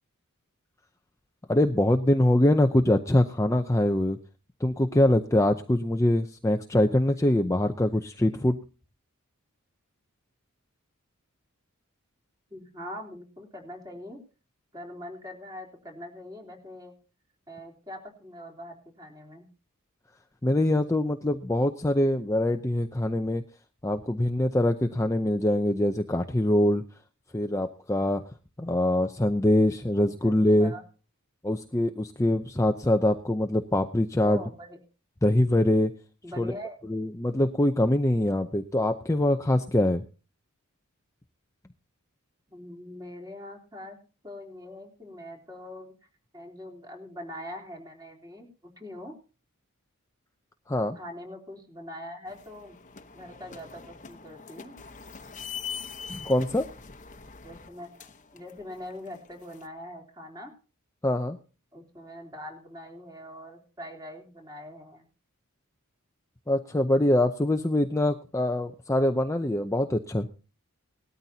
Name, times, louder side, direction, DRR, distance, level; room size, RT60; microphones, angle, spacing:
voice 1, 1.5-4.2 4.6-8.6 20.4-23.4 23.8-26.8 27.3-28.2 28.6-30.7 31.4-34.4 35.2-35.9 36.4-36.5 36.9-40.0 50.7-51.0 56.1-56.7 61.0-61.4 66.5-70.3, left 1 dB, 15° left, 6 dB, 0.6 m, -24 dB
voice 2, 12.5-14.2 14.7-16.9 17.5-19.5 30.2-30.8 34.2-34.8 36.2-36.8 42.5-44.0 44.2-45.9 46.3-49.1 51.0-52.8 53.1-54.7 57.4-57.9 58.3-60.5 61.7-65.1, left 1 dB, 20° right, -1 dB, 3.5 m, -42 dB
sound 1, 52.3-59.7, left 6 dB, 35° left, 1.0 m, -43 dB
19.5 x 13.0 x 2.8 m, 0.35 s
head